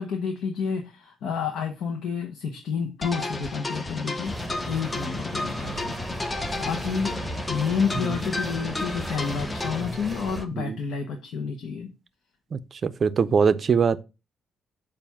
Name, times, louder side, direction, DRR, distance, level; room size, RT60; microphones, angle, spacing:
voice 1, 0.0-4.3 4.7-5.9 6.2-7.1 7.5-11.9, left 6 dB, 80° left, 0.9 m, -30 dB
sound 1, 3.0-9.8, left 2 dB, 25° left, 0.7 m, -33 dB
sound 2, 4.2-10.5, right 1 dB, 10° right, 0.8 m, -36 dB
voice 2, 12.5-14.0, right 6 dB, 45° right, 0.4 m, -23 dB
7.0 x 2.5 x 5.5 m
cardioid pair, 90°, 0 cm